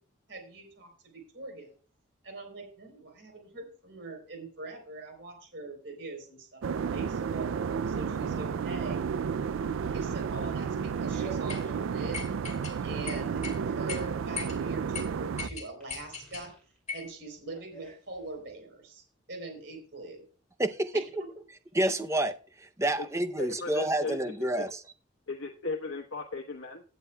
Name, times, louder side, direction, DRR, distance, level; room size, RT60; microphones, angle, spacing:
voice 1, 0.3-1.7 2.2-7.5 7.9-9.0 9.9-12.2 12.8-16.5 16.9-19.0 19.3-20.2 20.9-21.3, right 2 dB, 60° right, 3.7 m, -43 dB
sound 1, 6.6-15.5, right 6 dB, 75° right, 0.3 m, -32 dB
Fart, 10.8-18.5, right 2 dB, 5° left, 6.2 m, -52 dB
sound 2, 11.5-11.6 12.1-12.7 13.1-13.6 13.9-14.0 14.4-14.6 14.9-15.0 15.4-16.5 16.9-17.1, left 5 dB, 35° left, 2.2 m, -38 dB
voice 2, 20.6-21.0 21.7-22.3 22.8-24.8, right 1 dB, 15° right, 0.6 m, -28 dB
voice 3, 23.4-24.7 25.3-26.8, left 3 dB, 80° left, 1.1 m, -36 dB
16.0 x 9.4 x 2.3 m
head